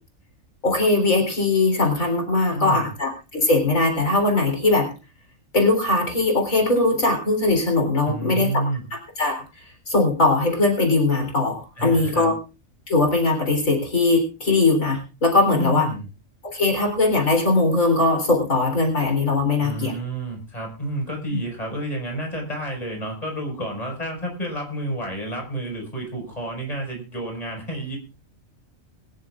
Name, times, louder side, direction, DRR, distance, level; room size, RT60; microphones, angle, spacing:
voice 1, 0.6-4.9 5.5-8.6 8.9-12.3 12.9-15.9 16.4-19.9, left 2 dB, 80° left, 2 dB, 4.1 m, -20 dB
voice 2, 2.5-2.9 8.1-8.8 11.8-12.3 15.5-16.0 19.6-28.0, right 1 dB, 25° left, 1 dB, 5.3 m, -30 dB
22.5 x 14.0 x 2.4 m, 0.32 s
omnidirectional pair, 1.4 m